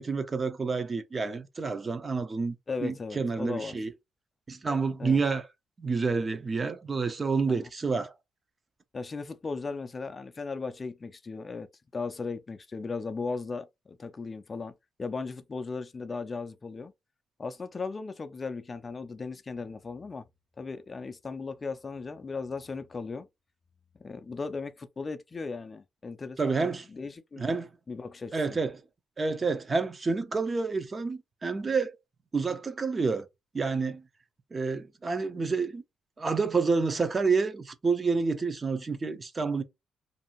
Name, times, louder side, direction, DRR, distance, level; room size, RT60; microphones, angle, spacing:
voice 1, 0.0-2.6 2.8-3.9 4.5-5.5 5.8-8.1 26.4-26.9 27.4-27.7 28.3-28.8 29.2-31.9 32.3-33.3 33.5-34.0 34.5-35.8 36.2-39.6, right 4 dB, 30° right, 0.5 m, -28 dB
voice 2, 2.7-3.8 5.0-5.2 7.5-7.6 8.9-14.7 15.0-16.9 17.4-20.3 20.6-23.3 24.0-27.4 27.9-28.6, left 4 dB, 30° left, 0.4 m, -37 dB
2.6 x 2.4 x 2.9 m
cardioid pair, 90°, 0 cm